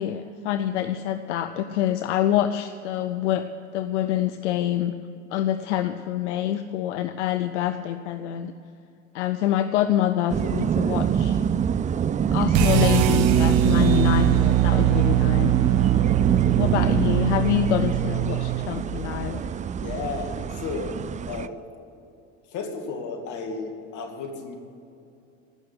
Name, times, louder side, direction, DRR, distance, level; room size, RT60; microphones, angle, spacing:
voice 1, 0.0-3.4 3.7-4.9 5.3-8.5 9.1-11.4 12.3-15.6 16.6-19.4, left 11 dB, 85° left, 10 dB, 0.6 m, -26 dB
sound 1, 10.3-21.5, right 8 dB, 20° right, 0.4 m, -26 dB
sound 2, 12.5-18.7, right 12 dB, 70° right, 1.0 m, -21 dB
voice 2, 19.7-21.0 21.3-21.6 22.5-24.6, left 4 dB, 60° left, 4 dB, 2.4 m, -33 dB
16.0 x 6.5 x 9.5 m, 2.7 s
hypercardioid pair, 80°, 34 cm